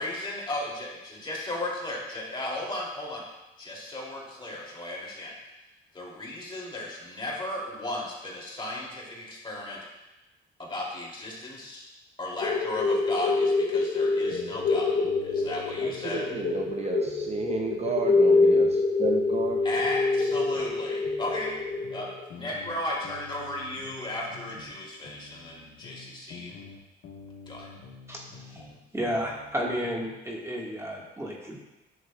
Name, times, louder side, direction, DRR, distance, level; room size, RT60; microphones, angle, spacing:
voice 1, 0.0-3.2 3.6-5.4 5.9-9.8 10.6-11.9 12.2-15.0 15.2-16.3 19.6-21.5 21.9-26.6 27.5-27.7, left 1 dB, 25° left, -4 dB, 2.8 m, -35 dB
sound 1, 12.4-22.3, left 3 dB, 60° left, 0.9 m, -25 dB
sound 2, 14.3-16.8 17.0-20.8 21.0-24.8 25.0-28.8 29.0-30.1, left 4 dB, 80° left, 1.4 m, -47 dB
voice 2, 15.8-19.6, right 5 dB, 35° right, 3 dB, 0.6 m, -33 dB
voice 3, 28.1-28.7 28.9-31.6, equal, 15° right, -3 dB, 1.6 m, -32 dB
10.5 x 6.5 x 2.3 m, 0.99 s
cardioid pair, 90°, 20 cm